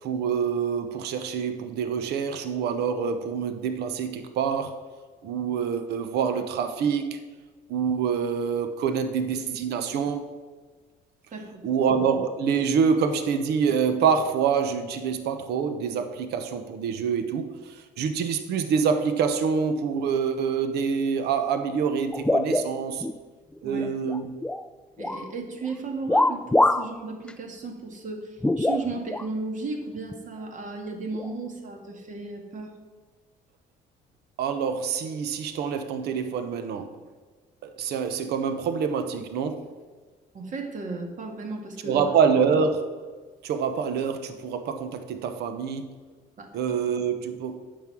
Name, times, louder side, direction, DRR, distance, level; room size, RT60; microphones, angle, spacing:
voice 1, 0.0-4.8 5.2-7.2 7.7-10.3 11.6-23.1 23.6-24.3 34.4-36.9 37.6-39.7 41.8-43.1 43.4-45.9 46.5-47.6, right 6 dB, 75° right, 9 dB, 0.9 m, -26 dB
voice 2, 11.3-11.7 23.6-23.9 25.0-32.8 40.3-42.0 46.4-46.6, right 3 dB, 50° right, 3 dB, 2.0 m, -35 dB
sound 1, 22.1-23.2 23.6-24.7 25.0-25.3 26.1-26.9 27.3-27.4 28.4-29.3 30.1-30.2 31.1-31.3, left 2 dB, 5° left, 0.3 m, -24 dB
9.3 x 6.6 x 6.0 m, 1.4 s
cardioid pair, 110°, 17 cm